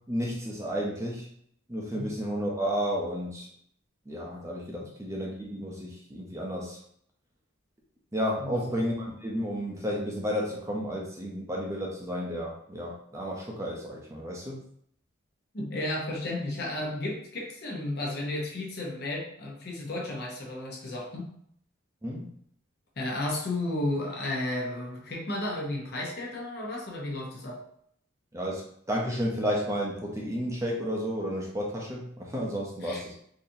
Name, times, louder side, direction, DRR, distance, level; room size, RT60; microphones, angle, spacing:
voice 1, 0.1-1.3 1.7-3.5 4.1-6.8 8.1-14.6 22.0-22.3 28.3-33.1, equal, 15° right, -2 dB, 0.6 m, -32 dB
voice 2, 15.5-21.3 23.0-27.6 32.8-33.0, left 1 dB, 50° left, -2 dB, 0.8 m, -33 dB
3.9 x 2.8 x 2.7 m, 0.67 s
head